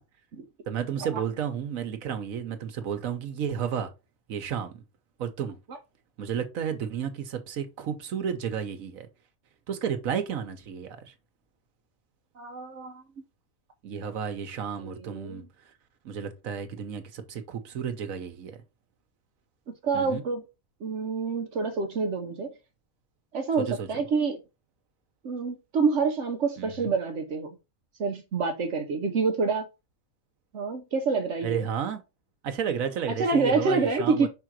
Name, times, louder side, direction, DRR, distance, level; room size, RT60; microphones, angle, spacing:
voice 1, 0.7-3.9 4.3-4.8 5.2-5.6 6.2-9.1 9.7-11.1 13.8-15.4 16.0-18.6 19.9-20.2 23.6-23.9 26.6-26.9 31.4-32.0 32.4-34.3, right 8 dB, 85° right, 1.3 m, -32 dB
voice 2, 12.4-13.0 14.8-15.4 19.8-20.4 20.8-22.5 23.3-24.4 25.2-27.5 28.0-29.7 30.5-31.7 33.2-34.3, right 4 dB, 65° right, 1.1 m, -27 dB
5.6 x 3.8 x 4.5 m
omnidirectional pair, 1.4 m